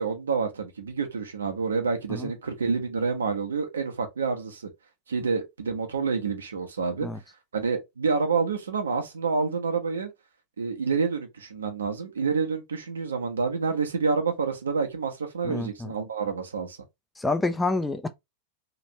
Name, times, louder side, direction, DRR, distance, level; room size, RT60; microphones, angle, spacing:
voice 1, 0.0-4.7 5.1-7.1 7.5-10.1 10.6-16.8, right 5 dB, 70° right, 0.8 m, -28 dB
voice 2, 15.4-15.9 17.2-18.1, left 2 dB, 10° left, 0.4 m, -28 dB
3.0 x 2.5 x 2.9 m
figure-of-eight pair, 90°, 0 cm